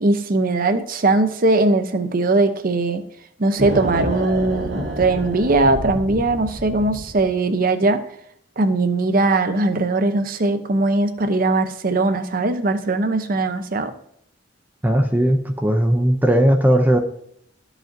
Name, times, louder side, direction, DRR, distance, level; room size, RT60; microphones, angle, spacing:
voice 1, 0.0-3.0 3.4-8.0 8.6-13.9, right 2 dB, 50° right, 9 dB, 0.7 m, -20 dB
sound 1, 3.6-7.3, right 1 dB, 80° right, 1.8 m, -28 dB
voice 2, 14.8-17.0, right 1 dB, 10° right, 4 dB, 0.5 m, -17 dB
13.0 x 5.0 x 2.6 m, 0.70 s
head